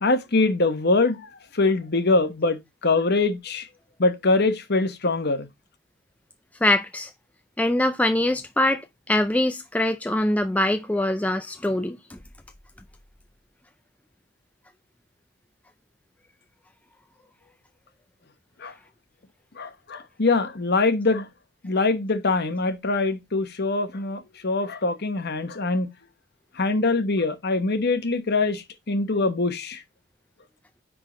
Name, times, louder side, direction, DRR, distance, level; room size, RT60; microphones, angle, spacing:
voice 1, 0.0-1.2 1.5-3.7 4.0-5.5 18.6-18.7 19.6-21.3 21.6-25.9 26.6-29.8, left 3 dB, 45° left, 1.1 m, -23 dB
voice 2, 6.6-7.1 7.6-12.2, left 1 dB, 5° left, 0.3 m, -23 dB
9.8 x 3.8 x 3.9 m
head